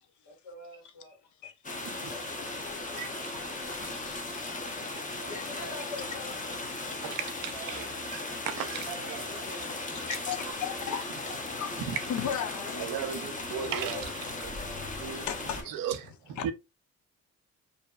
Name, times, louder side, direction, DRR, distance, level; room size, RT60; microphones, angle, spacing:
voice 1, 0.2-1.2 1.8-3.1 3.4-6.7 9.0-10.8 13.6-15.3, left 3 dB, 85° left, 1.4 m, -47 dB
sound 1, 1.6-15.6, left 2 dB, 25° left, 0.7 m, -37 dB
voice 2, 3.5-4.0 5.2-5.3 7.0-9.4 11.8-12.0 12.8-14.1 15.0-15.3 15.7-16.5, right 8 dB, 80° right, 0.5 m, -36 dB
voice 3, 8.1-8.4 9.6-11.8 12.1-12.9 15.3-15.8 16.4-16.5, left 9 dB, 60° left, 0.5 m, -37 dB
2.6 x 2.2 x 2.3 m
cardioid pair, 60°, 33 cm